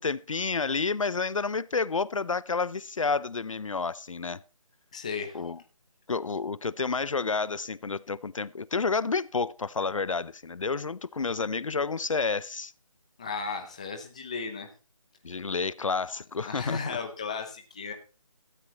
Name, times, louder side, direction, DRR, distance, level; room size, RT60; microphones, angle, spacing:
voice 1, 0.0-4.4 5.3-5.6 6.1-12.7 15.2-16.8, left 4 dB, 60° left, 0.6 m, -30 dB
voice 2, 4.9-5.4 13.2-14.7 16.4-17.9, left 5 dB, 10° left, 0.8 m, -35 dB
17.0 x 13.0 x 3.0 m
figure-of-eight pair, 175°, 18 cm